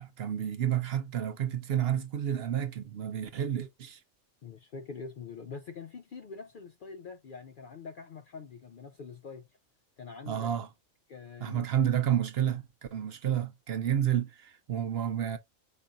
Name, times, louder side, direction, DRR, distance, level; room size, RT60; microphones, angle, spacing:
voice 1, 0.0-4.0 10.3-10.7 11.4-12.6 12.9-15.4, right 10 dB, 60° right, 0.8 m, -30 dB
voice 2, 4.4-9.5 10.0-10.5 11.1-12.0, left 5 dB, 60° left, 0.5 m, -44 dB
5.2 x 4.0 x 2.3 m
omnidirectional pair, 1.3 m